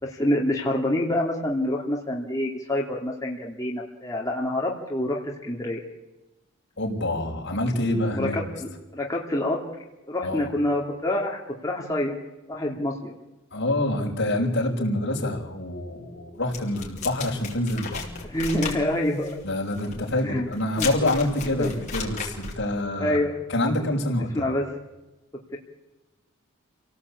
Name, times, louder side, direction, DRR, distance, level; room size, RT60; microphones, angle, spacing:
voice 1, 0.0-5.8 8.1-9.6 10.1-12.1 12.5-13.1 18.2-19.4 20.2-20.5 20.8-20.9 21.6-21.7 23.0-23.4 24.3-24.7, left 1 dB, 15° left, -2 dB, 2.8 m, -27 dB
voice 2, 6.8-8.4 10.2-10.5 13.5-18.1 19.4-23.2 23.5-24.4, left 1 dB, 55° left, -1 dB, 5.7 m, -26 dB
sound 1, 16.5-22.6, left 5 dB, 35° left, 5.7 m, -35 dB
29.5 x 18.0 x 8.6 m, 1.1 s
head